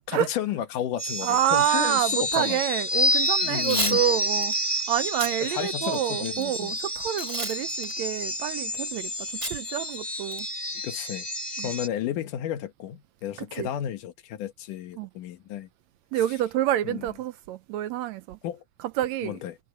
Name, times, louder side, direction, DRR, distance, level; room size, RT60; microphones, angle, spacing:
voice 1, 0.1-2.6 3.4-4.0 5.5-6.7 10.8-11.3 11.6-15.7 16.8-17.0 18.4-18.6 19.2-19.5, left 11 dB, 90° left, 2.9 m, -32 dB
sound 1, 1.0-11.9, left 1 dB, 15° left, 1.1 m, -29 dB
voice 2, 1.2-4.6 4.9-10.5 11.6-11.7 13.4-13.7 15.0-15.1 16.1-18.4 18.8-19.4, right 12 dB, 75° right, 1.7 m, -28 dB
Packing tape duct tape / Tearing, 3.5-4.0 4.4-4.6 5.1-5.3 5.8-6.4 7.2-7.6 7.8-7.9 9.4-9.6 9.9-10.0 10.3-10.6, right 1 dB, 10° right, 2.5 m, -31 dB
omnidirectional pair, 3.6 m